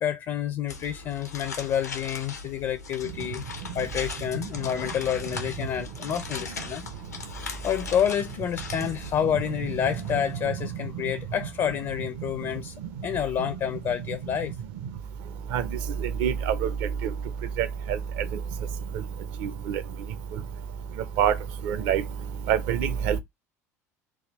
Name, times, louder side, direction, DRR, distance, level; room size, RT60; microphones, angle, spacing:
voice 1, 0.0-3.4 3.7-6.8 7.6-12.7 13.0-14.5, left 9 dB, 40° left, 0.5 m, -28 dB
sound 1, 0.7-10.4, left 4 dB, 85° left, 0.7 m, -39 dB
voice 2, 16.2-16.7 17.6-17.7 19.4-19.8 21.2-21.3 21.6-22.0 22.5-23.2, right 9 dB, 55° right, 0.6 m, -24 dB
3.6 x 2.3 x 3.0 m
figure-of-eight pair, 65°, 9 cm